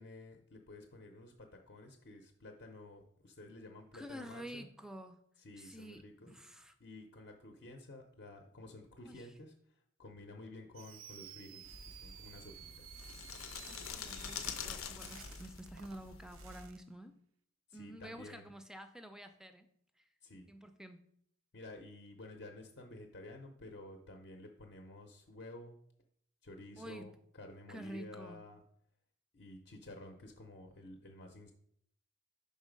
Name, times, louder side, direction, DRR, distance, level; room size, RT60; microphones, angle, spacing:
voice 1, 0.0-4.7 5.4-6.3 6.8-9.5 10.0-12.5 17.7-18.5 20.2-20.5 21.5-25.8 26.4-28.6 29.3-31.5, left 2 dB, 50° left, 3 dB, 0.6 m, -52 dB
voice 2, 3.9-5.3 5.6-6.8 9.0-9.3 13.7-17.2 17.7-19.7 20.0-20.1 20.5-21.1 26.8-27.2 27.7-28.4, right 1 dB, 5° right, 8 dB, 0.4 m, -49 dB
Fireworks, 10.7-16.8, right 11 dB, 75° right, 0.4 m, -54 dB
sound 1, 11.7-16.7, left 6 dB, 90° left, 0.6 m, -46 dB
5.4 x 4.0 x 5.1 m, 0.69 s
head